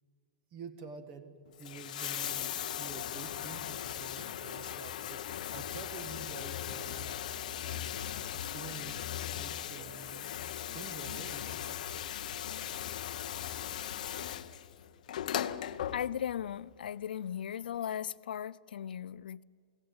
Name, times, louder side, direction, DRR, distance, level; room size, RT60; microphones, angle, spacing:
voice 1, 0.5-7.1 7.6-9.0 9.3-10.3 10.7-11.6, right 5 dB, 25° right, 1.5 m, -48 dB
Bathtub (filling or washing), 1.5-16.4 17.5-17.6, left 10 dB, 55° left, 0.8 m, -38 dB
voice 2, 15.9-19.4, left 9 dB, 85° left, 0.5 m, -37 dB
24.0 x 17.0 x 8.8 m
supercardioid pair, 175°, 5 cm